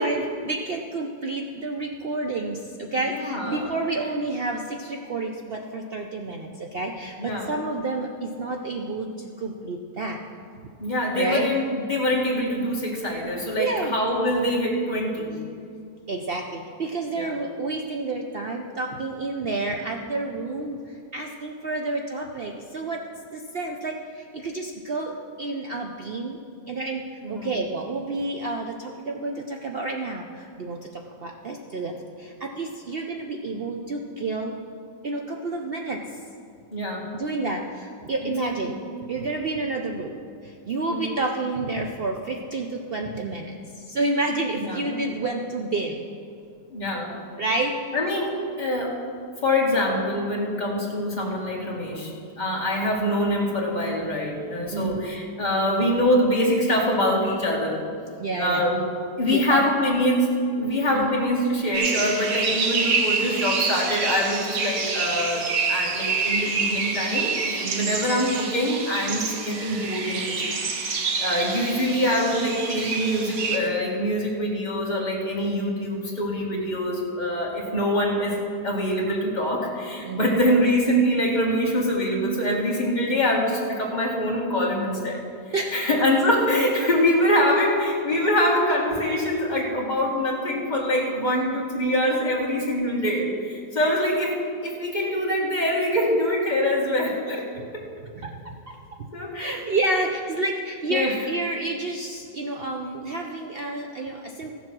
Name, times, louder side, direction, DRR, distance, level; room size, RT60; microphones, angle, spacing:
voice 1, 0.0-10.2 11.1-11.5 13.6-14.0 16.1-23.0 23.3-26.4 26.7-27.0 27.3-34.5 35.0-36.0 37.1-38.8 39.1-40.1 40.4-46.0 47.4-47.8 54.7-55.0 58.2-58.8 59.3-59.6 60.9-61.2 67.6-68.0 80.0-80.5 85.5-85.9 98.2-98.3 98.7-99.1 99.3-104.5, right 2 dB, 80° right, 2 dB, 0.5 m, -29 dB
voice 2, 3.1-3.8 7.2-7.5 10.8-15.3 17.1-17.4 27.2-27.5 36.7-37.1 38.2-38.7 40.9-41.1 44.6-44.8 46.7-47.1 47.9-49.0 49.4-57.8 58.4-58.8 59.2-70.6 71.2-85.2 85.7-97.4 97.7-97.8 99.1-99.6 100.9-101.2, equal, 25° left, -3 dB, 2.1 m, -24 dB
sound 1, 61.7-73.6, right 4 dB, 55° right, 1.4 m, -27 dB
15.0 x 7.2 x 6.1 m, 2.4 s
omnidirectional pair, 1.9 m